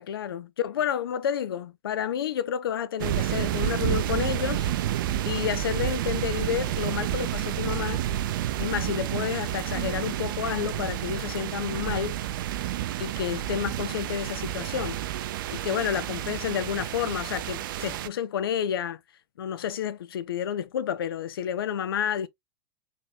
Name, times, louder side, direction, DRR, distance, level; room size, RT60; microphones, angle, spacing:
voice 1, 0.0-4.7 5.2-8.0 8.6-12.2 13.0-15.0 15.5-19.0 19.4-22.3, left 9 dB, 65° left, 0.5 m, -30 dB
sound 1, 3.0-18.1, right 12 dB, 55° right, 0.4 m, -30 dB
4.2 x 3.5 x 2.2 m
figure-of-eight pair, 95°, 13 cm